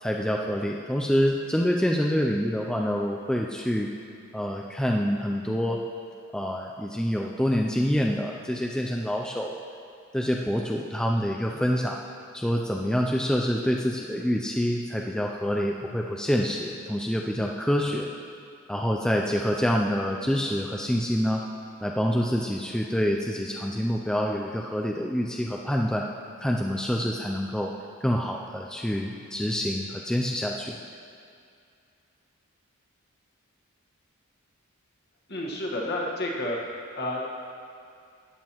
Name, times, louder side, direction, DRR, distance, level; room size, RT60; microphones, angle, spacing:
voice 1, 0.0-3.9 4.3-5.8 6.3-9.5 10.1-12.0 12.3-18.1 18.7-21.4 21.8-26.1 26.4-27.7 28.0-30.8, equal, 5° left, -1 dB, 0.4 m, -26 dB
voice 2, 35.3-36.6 36.9-37.3, left 1 dB, 50° left, -2 dB, 1.5 m, -30 dB
13.5 x 9.0 x 3.0 m, 2.4 s
head